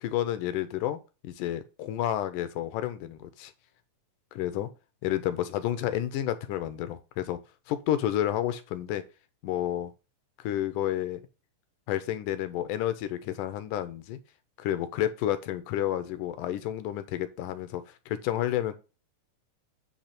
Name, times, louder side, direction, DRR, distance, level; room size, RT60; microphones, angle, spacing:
voice 1, 0.0-3.5 4.3-4.7 5.0-7.4 7.7-9.0 9.4-9.9 10.4-11.2 11.9-14.2 14.6-18.8, left 12 dB, 85° left, 2.2 m, -30 dB
8.8 x 3.3 x 5.8 m
omnidirectional pair, 3.8 m